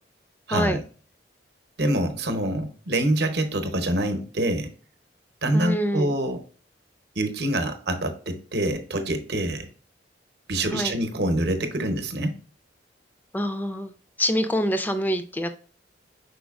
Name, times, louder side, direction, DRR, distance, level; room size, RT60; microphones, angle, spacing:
voice 1, 0.5-0.8 1.8-4.7 5.4-6.4 7.2-9.7 10.5-12.4, right 1 dB, 60° right, 7 dB, 0.8 m, -25 dB
voice 2, 5.5-6.2 10.7-10.9 13.3-13.9 14.2-15.5, equal, 10° left, 9 dB, 0.4 m, -25 dB
5.1 x 4.3 x 2.3 m, 0.40 s
head